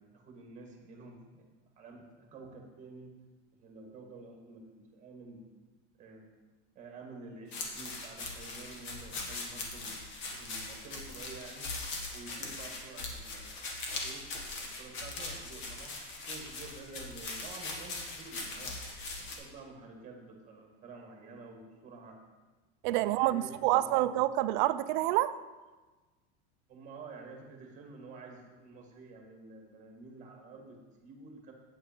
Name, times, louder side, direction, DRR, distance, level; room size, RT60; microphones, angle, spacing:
voice 1, 0.0-3.2 3.6-5.5 6.0-6.3 6.8-10.0 10.3-11.7 12.1-14.3 14.6-16.0 16.3-18.8 19.2-22.2 23.2-24.1 26.7-31.5, right 3 dB, 25° right, 2 dB, 1.8 m, -50 dB
sound 1, 7.5-19.4, left 3 dB, 45° left, 1.7 m, -40 dB
voice 2, 22.8-25.3, right 15 dB, 60° right, 14 dB, 0.4 m, -27 dB
8.4 x 8.4 x 4.5 m, 1.2 s
supercardioid pair, 155°, 29 cm